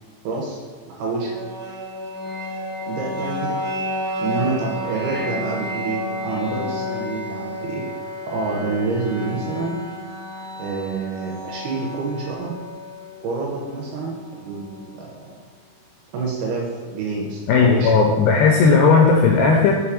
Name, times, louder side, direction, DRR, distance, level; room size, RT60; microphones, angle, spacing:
voice 1, 0.2-0.6 0.9-1.3 2.9-3.6 4.2-7.9 8.3-9.8 10.6-12.5 13.2-14.2 14.4-15.4 16.1-17.9, right 4 dB, 80° right, -2 dB, 2.3 m, -27 dB
sound 1, 1.1-15.1, left 1 dB, 60° right, 0.9 m, -31 dB
voice 2, 17.5-19.7, left 4 dB, 85° left, 0 dB, 2.3 m, -15 dB
7.0 x 3.1 x 4.8 m, 1.4 s
omnidirectional pair, 5.1 m